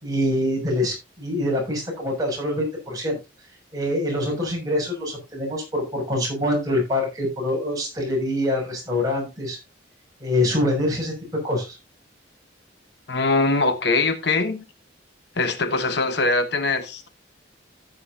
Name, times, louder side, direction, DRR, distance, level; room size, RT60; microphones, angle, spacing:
voice 1, 0.0-3.2 3.7-9.6 10.2-11.1 11.4-11.8, left 1 dB, 20° right, 6.6 m, -25 dB
voice 2, 13.1-14.6 15.4-17.1, left 3 dB, 60° left, 1.1 m, -22 dB
15.5 x 8.4 x 2.7 m
head